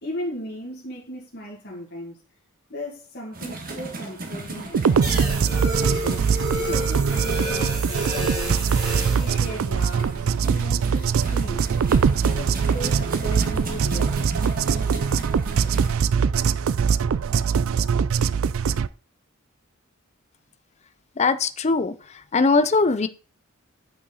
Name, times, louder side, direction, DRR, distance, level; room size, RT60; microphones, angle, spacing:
voice 1, 0.0-2.2 2.7-6.2 6.6-8.6 9.1-11.7 12.2-14.2, equal, 50° left, 2.3 m, -36 dB
sound 1, 3.3-16.0, right 2 dB, 45° right, 1.7 m, -36 dB
sound 2, 4.7-18.9, right 6 dB, 65° right, 0.4 m, -22 dB
sound 3, 5.0-9.4, right 1 dB, 15° right, 3.3 m, -30 dB
voice 2, 21.2-21.9 22.3-23.1, left 4 dB, 30° left, 0.5 m, -20 dB
8.4 x 5.7 x 4.0 m
head